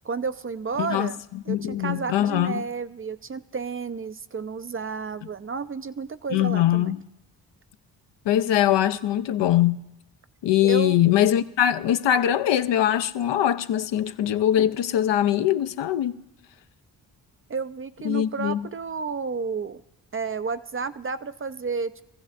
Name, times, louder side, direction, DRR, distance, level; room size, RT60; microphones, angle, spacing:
voice 1, 0.0-1.2 1.5-6.9 10.6-11.0 17.5-19.8 20.1-22.0, right 5 dB, 30° right, 0.4 m, -31 dB
voice 2, 0.8-2.6 6.3-7.0 8.3-9.8 10.4-16.2 18.0-18.6, left 11 dB, 70° left, 0.6 m, -22 dB
23.5 x 15.0 x 2.5 m
supercardioid pair, 45°, 45 cm